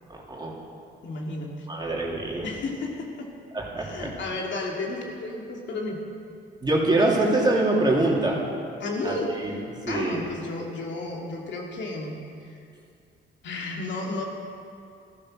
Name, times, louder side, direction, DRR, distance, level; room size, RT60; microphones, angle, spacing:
voice 1, 0.1-0.5 1.7-2.5 3.5-4.1 6.6-8.4 9.0-10.2, right 2 dB, 20° right, -3 dB, 3.0 m, -24 dB
voice 2, 1.0-1.7 2.4-3.3 3.8-6.0 8.8-9.3 9.9-12.6 13.4-14.2, left 2 dB, 65° left, 0 dB, 2.2 m, -33 dB
13.5 x 12.0 x 6.3 m, 2.4 s
cardioid pair, 90°, 20 cm